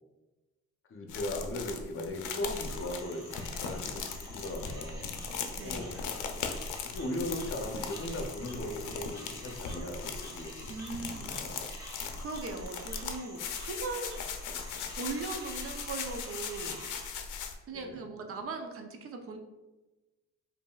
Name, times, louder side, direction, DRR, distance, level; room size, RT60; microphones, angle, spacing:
voice 1, 0.9-5.1 5.6-5.9 6.8-10.6 10.9-11.7 14.5-14.8 17.7-18.0, left 1 dB, 45° left, 3 dB, 0.7 m, -38 dB
sound 1, 1.1-17.6, left 5 dB, 85° left, 0.5 m, -39 dB
sound 2, 2.5-17.1, equal, 10° right, 1.0 m, -49 dB
voice 2, 10.7-11.3 12.2-14.2 15.0-16.9 17.7-19.4, right 4 dB, 50° right, 5 dB, 0.6 m, -39 dB
5.2 x 2.6 x 2.3 m, 1.1 s
cardioid pair, 90°, 30 cm